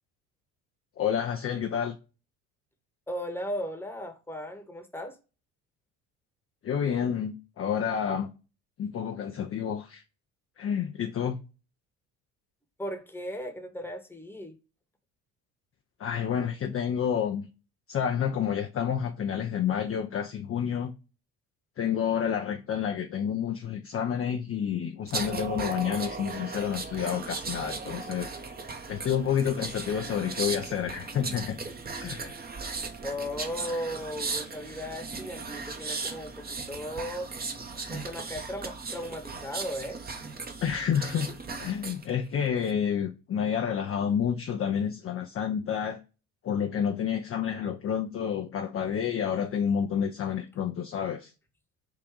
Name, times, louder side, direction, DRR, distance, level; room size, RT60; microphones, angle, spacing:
voice 1, 1.0-2.0 6.6-8.3 8.8-10.0 10.6-11.4 16.0-17.5 17.9-20.9 21.8-28.4 28.9-31.6 32.0-32.4 40.6-46.0 46.4-51.3, left 8 dB, 30° left, 0.5 m, -29 dB
voice 2, 3.1-5.2 12.8-14.6 33.0-37.3 37.9-40.0, equal, 5° left, 1.0 m, -36 dB
sound 1, 25.1-42.0 42.4-42.7, right 4 dB, 20° right, 0.8 m, -37 dB
3.7 x 2.5 x 4.5 m
hypercardioid pair, 65°, 43 cm